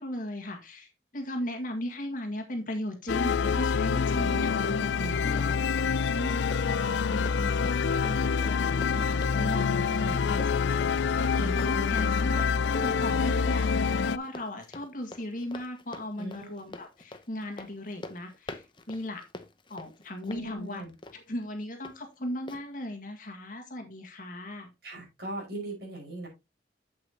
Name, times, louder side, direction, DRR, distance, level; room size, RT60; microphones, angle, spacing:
voice 1, 0.0-5.6 6.1-10.4 10.7-12.4 12.7-19.2 19.7-24.7, left 1 dB, 45° left, 3 dB, 1.8 m, -37 dB
sound 1, 3.1-14.2, left 5 dB, 75° left, 0.4 m, -26 dB
Run, 4.1-22.0 22.5-22.6, left 2 dB, 25° left, 0.8 m, -47 dB
voice 2, 5.0-5.5 9.9-10.3 11.3-12.0 16.2-16.6 20.2-20.9 24.8-26.3, right 1 dB, 60° right, -1 dB, 5.3 m, -39 dB
8.5 x 7.9 x 2.9 m, 0.24 s
head